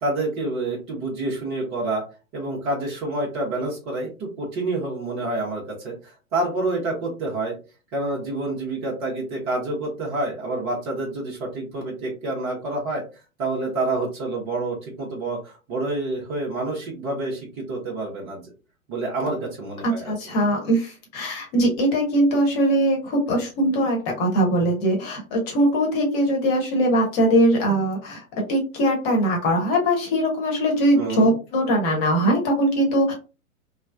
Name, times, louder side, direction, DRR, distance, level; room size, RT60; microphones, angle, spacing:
voice 1, 0.0-2.0 2.3-7.5 7.9-13.0 13.4-18.4 18.9-20.1 31.0-31.4, right 2 dB, 20° right, -3 dB, 0.7 m, -28 dB
voice 2, 19.8-28.2 28.5-33.1, right 1 dB, 30° left, 0 dB, 1.0 m, -21 dB
3.1 x 2.0 x 2.3 m, 0.32 s
figure-of-eight pair, 110°, 42 cm